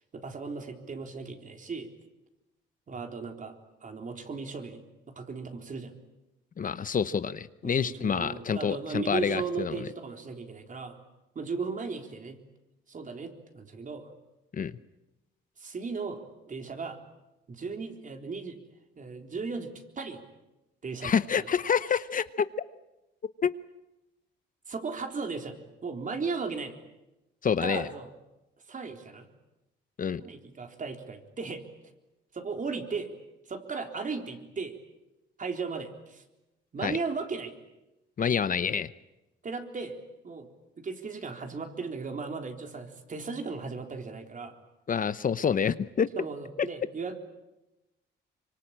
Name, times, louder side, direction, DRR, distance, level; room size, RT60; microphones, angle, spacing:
voice 1, 0.1-1.9 2.9-3.5 3.8-5.9 7.6-11.0 11.4-12.4 12.9-14.1 15.6-16.2 16.5-17.0 17.5-18.6 19.0-20.2 20.8-21.5 24.7-26.8 27.6-28.1 28.7-29.3 30.2-31.6 32.3-33.1 33.5-34.7 35.4-36.2 36.7-37.5 39.4-40.0 40.2-40.5 40.8-44.5 46.2-47.2, right 4 dB, 40° right, 5 dB, 3.8 m, -36 dB
voice 2, 6.6-9.8 14.5-14.7 21.0-22.5 23.4-23.5 27.4-27.9 30.0-30.2 36.8-36.9 38.2-38.9 44.9-46.1 46.6-46.7, left 7 dB, 45° left, 14 dB, 0.9 m, -27 dB
25.0 x 24.0 x 8.9 m, 0.99 s
cardioid pair, 90°, 20 cm